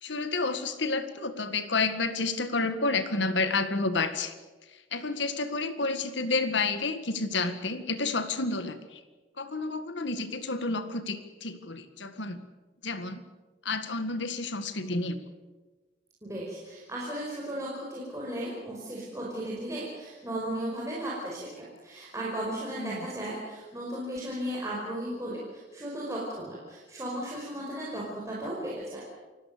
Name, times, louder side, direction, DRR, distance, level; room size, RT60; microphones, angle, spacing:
voice 1, 0.0-4.3 4.7-9.0 9.4-12.4 12.8-13.2 13.7-15.2 22.8-23.1, left 3 dB, 70° left, 10 dB, 1.9 m, -30 dB
voice 2, 16.2-21.5 21.8-29.0, right 1 dB, 15° right, -5 dB, 5.1 m, -35 dB
28.5 x 18.5 x 6.8 m, 1.3 s
head